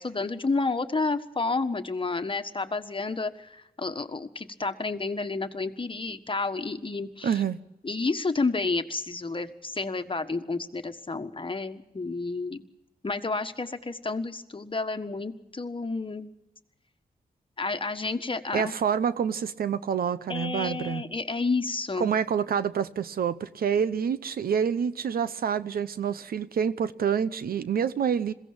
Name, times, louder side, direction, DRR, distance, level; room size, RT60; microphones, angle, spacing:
voice 1, 0.0-7.4 7.8-12.6 13.0-16.3 17.6-18.7 20.3-22.2, left 3 dB, 35° left, 1.5 m, -30 dB
voice 2, 7.2-7.6 18.5-21.0 22.0-28.3, right 7 dB, 80° right, 0.8 m, -27 dB
21.5 x 16.0 x 8.8 m
cardioid pair, 50°, 15 cm